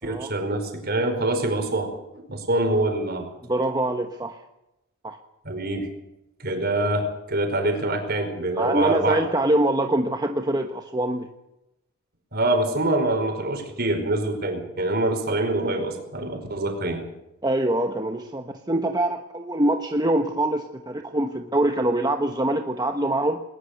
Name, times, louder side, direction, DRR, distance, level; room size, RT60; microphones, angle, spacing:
voice 1, 0.0-3.3 5.4-5.9 6.4-9.2 12.3-17.0, right 2 dB, 45° right, 5 dB, 5.0 m, -25 dB
voice 2, 3.5-4.4 5.0-5.2 8.6-11.3 17.4-23.4, right 1 dB, 20° right, 5 dB, 1.1 m, -24 dB
20.5 x 20.0 x 6.7 m, 0.90 s
head